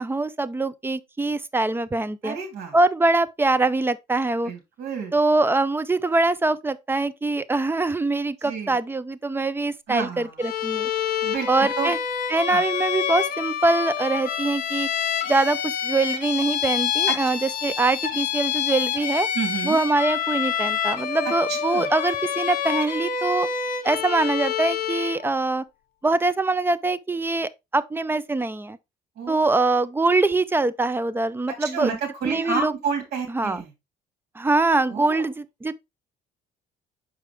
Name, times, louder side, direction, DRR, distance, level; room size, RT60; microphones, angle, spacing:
voice 1, 0.0-2.4 2.7-4.5 5.1-10.9 11.5-12.0 12.3-14.9 15.3-19.3 19.6-23.5 23.8-25.6 26.0-28.8 29.3-32.0 32.2-32.7 33.3-33.6 34.4-35.8, right 2 dB, 15° right, 0.5 m, -23 dB
voice 2, 2.2-2.8 4.4-5.2 8.4-8.8 9.9-10.4 11.2-11.9 12.5-12.6 17.1-17.2 19.3-19.8 21.5-21.9 29.2-29.4 31.6-33.7 34.9-35.3, right 5 dB, 70° right, 3.2 m, -30 dB
Bowed string instrument, 10.4-25.3, left 8 dB, 60° left, 1.5 m, -27 dB
6.6 x 4.9 x 3.4 m
cardioid pair, 110°, 17 cm